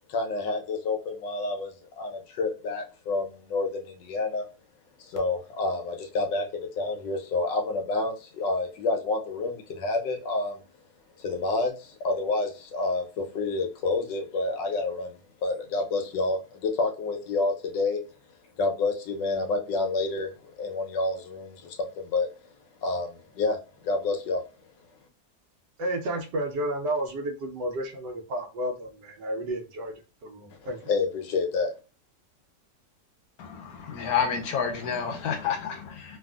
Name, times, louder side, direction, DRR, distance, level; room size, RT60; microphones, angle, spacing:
voice 1, 0.1-4.4 5.0-10.6 11.2-18.0 18.6-22.3 22.8-23.6 23.8-24.4 30.5-31.7, left 3 dB, 85° left, 3 dB, 1.4 m, -29 dB
voice 2, 25.8-29.9 30.2-30.8, right 1 dB, 75° right, 3 dB, 1.3 m, -31 dB
voice 3, 33.4-36.2, left 7 dB, 70° left, 4 dB, 1.0 m, -29 dB
3.4 x 2.4 x 2.3 m, 0.33 s
omnidirectional pair, 1.9 m